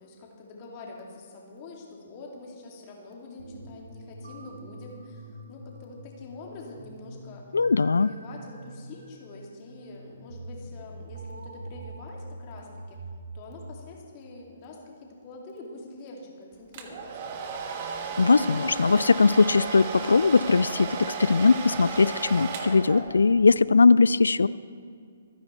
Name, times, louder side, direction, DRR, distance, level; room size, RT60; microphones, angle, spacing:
voice 1, 0.0-7.4 7.8-13.0 13.3-17.3, left 2 dB, 30° left, -1 dB, 2.5 m, -45 dB
sound 1, 3.4-13.7, right 1 dB, 65° right, 1.9 m, -44 dB
voice 2, 7.5-8.1 18.2-24.5, left 4 dB, 70° left, 19 dB, 0.3 m, -20 dB
Domestic sounds home sounds, 16.7-23.4, right 5 dB, 35° right, 1.3 m, -34 dB
27.0 x 9.8 x 3.3 m, 2.3 s
figure-of-eight pair, 125°, 0 cm